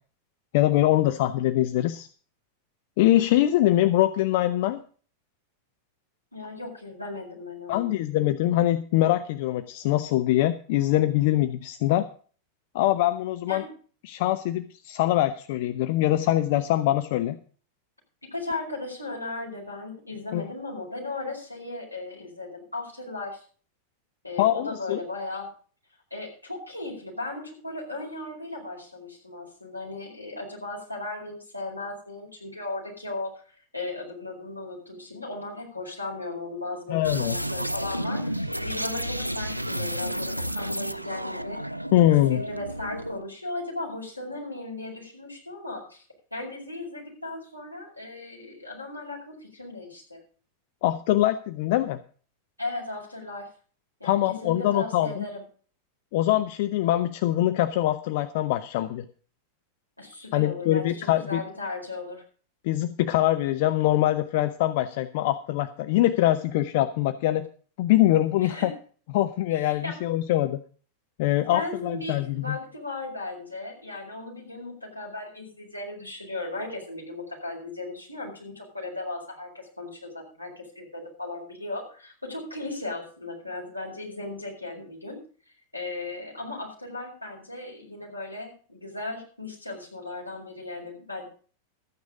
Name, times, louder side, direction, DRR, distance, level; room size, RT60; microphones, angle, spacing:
voice 1, 0.5-2.1 3.0-4.8 7.7-12.1 12.7-13.6 14.0-17.4 20.3-20.5 24.4-25.0 36.9-37.4 41.9-42.4 50.8-52.0 54.0-55.2 56.1-59.1 60.3-61.4 62.6-67.5 67.8-68.7 69.1-70.6 71.2-72.6, left 14 dB, 50° left, 11 dB, 0.7 m, -23 dB
voice 2, 6.3-7.9 13.5-13.7 18.3-23.4 24.2-25.5 26.1-41.6 42.0-46.0 46.3-50.2 52.6-53.5 54.0-55.4 60.0-62.2 68.4-68.7 69.5-70.0 71.5-91.3, left 2 dB, 85° left, -1 dB, 4.7 m, -36 dB
sound 1, 37.0-43.2, equal, 90° right, 0.5 m, -31 dB
13.5 x 9.4 x 5.0 m, 0.42 s
figure-of-eight pair, 90°, 0 cm